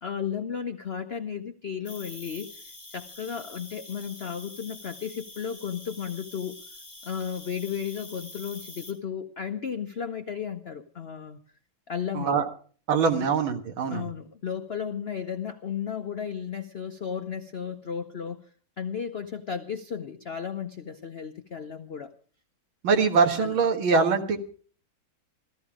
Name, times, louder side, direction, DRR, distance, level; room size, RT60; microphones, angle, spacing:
voice 1, 0.0-2.6 2.9-6.6 7.0-11.4 11.9-12.3 13.2-13.3 13.9-18.4 18.8-22.1 23.3-23.6, left 7 dB, 90° left, 8 dB, 0.5 m, -34 dB
Cricket, 1.8-8.9, left 1 dB, 15° left, 3.5 m, -45 dB
voice 2, 12.1-12.5 12.9-14.1 22.8-24.4, right 5 dB, 80° right, 4 dB, 2.3 m, -23 dB
15.5 x 13.5 x 4.9 m, 0.44 s
omnidirectional pair, 2.2 m